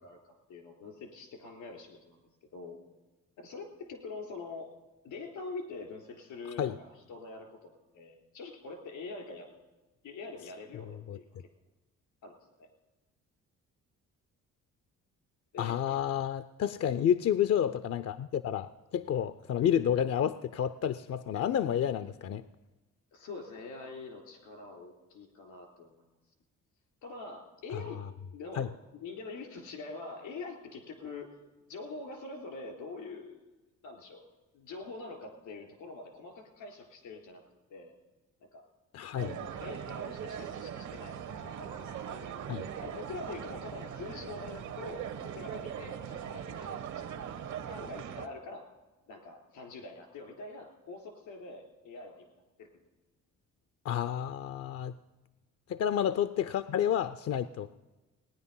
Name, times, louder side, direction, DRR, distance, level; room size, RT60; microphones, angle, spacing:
voice 1, 0.0-2.2 2.5-2.8 3.4-4.7 5.0-9.5 10.0-11.3 12.2-12.7 15.5-16.0 23.1-26.0 27.0-28.0 28.3-28.7 28.9-31.3 31.7-33.4 33.8-34.2 34.5-37.4 37.7-38.0 38.5-38.6 39.1-41.9 42.8-48.7 49.1-52.7 56.0-56.1, left 3 dB, 85° left, 4 dB, 3.4 m, -45 dB
voice 2, 15.6-22.4 28.5-28.7 38.9-39.3 42.5-42.6 53.8-54.9 55.7-57.7, left 9 dB, 55° left, 14 dB, 0.5 m, -30 dB
sound 1, 39.2-48.3, right 8 dB, 75° right, 1.1 m, -40 dB
18.5 x 9.8 x 5.6 m, 1.1 s
cardioid pair, 90°, 30 cm